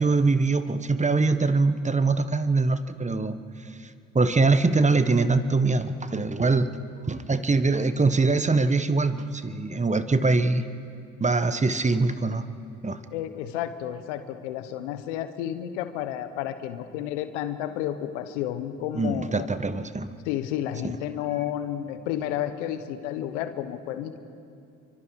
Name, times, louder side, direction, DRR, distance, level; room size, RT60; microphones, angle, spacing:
voice 1, 0.0-3.4 3.6-6.7 7.0-10.6 11.2-12.4 12.8-13.0 18.9-20.1 20.8-21.0, right 3 dB, 20° right, 11 dB, 1.2 m, -23 dB
voice 2, 13.1-19.5 20.2-24.2, left 11 dB, 90° left, 10 dB, 1.2 m, -31 dB
29.0 x 24.0 x 4.9 m, 2.5 s
hypercardioid pair, 60°, 35 cm